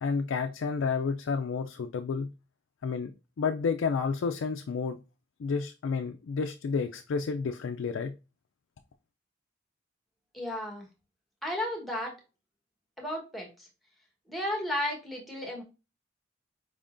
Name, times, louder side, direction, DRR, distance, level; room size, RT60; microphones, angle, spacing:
voice 1, 0.0-2.3 2.8-3.1 3.4-5.0 5.4-8.1, left 5 dB, 75° left, 0.4 m, -30 dB
voice 2, 10.3-10.9 11.4-12.2 13.0-13.7 14.3-15.6, left 1 dB, ahead, 1.2 m, -33 dB
4.9 x 3.6 x 2.5 m
head